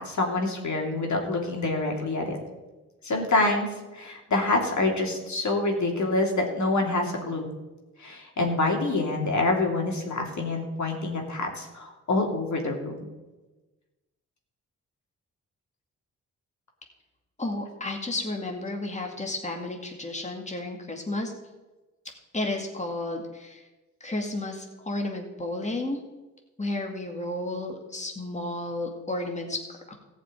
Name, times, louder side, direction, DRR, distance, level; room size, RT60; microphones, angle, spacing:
voice 1, 0.0-2.4 3.0-3.7 3.9-7.5 8.0-13.0, left 2 dB, 55° left, 1 dB, 2.9 m, -26 dB
voice 2, 17.4-21.3 22.3-23.6 24.0-26.0 26.6-30.0, left 2 dB, 20° left, 2 dB, 2.2 m, -32 dB
14.5 x 5.4 x 9.3 m, 1.2 s
supercardioid pair, 50°, 33 cm